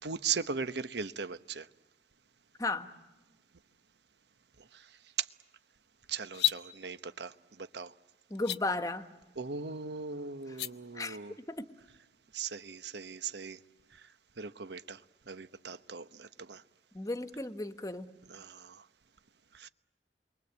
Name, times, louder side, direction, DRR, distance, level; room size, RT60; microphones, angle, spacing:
voice 1, 0.0-1.7 4.7-4.9 5.2-5.3 6.1-7.9 9.4-11.4 12.3-13.6 13.9-14.0 14.4-15.0 15.3-16.6 18.3-18.8 19.5-19.7, right 6 dB, 75° right, 1.0 m, -38 dB
voice 2, 2.6-2.9 8.3-9.1 10.9-11.7 16.9-18.1, left 2 dB, 20° left, 1.3 m, -35 dB
sound 1, 6.3-6.6 8.3-8.6 10.4-10.7, left 12 dB, 65° left, 0.8 m, -30 dB
29.0 x 23.0 x 8.2 m
head